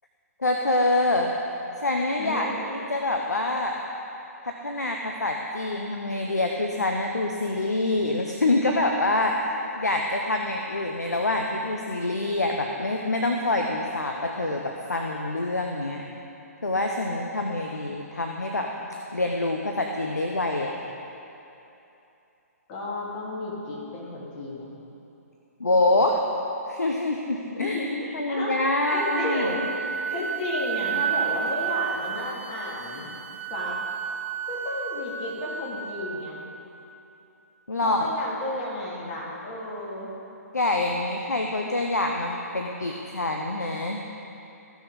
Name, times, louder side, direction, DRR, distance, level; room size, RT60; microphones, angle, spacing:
voice 1, 0.4-1.3 1.8-3.8 4.4-16.0 16.6-18.7 19.1-20.7 25.6-26.2 26.7-27.8 28.1-29.6 37.7-38.1 40.5-44.0, left 2 dB, 90° left, 2 dB, 0.8 m, -26 dB
voice 2, 2.2-2.7 22.7-24.7 27.6-33.1 33.5-33.8 34.5-36.4 37.8-40.1, left 1 dB, 35° left, -5 dB, 2.7 m, -33 dB
Wind instrument woodwind instrument, 28.8-36.6, right 8 dB, 50° right, 0.6 m, -32 dB
15.0 x 6.2 x 5.0 m, 2.9 s
figure-of-eight pair, 130°, 9 cm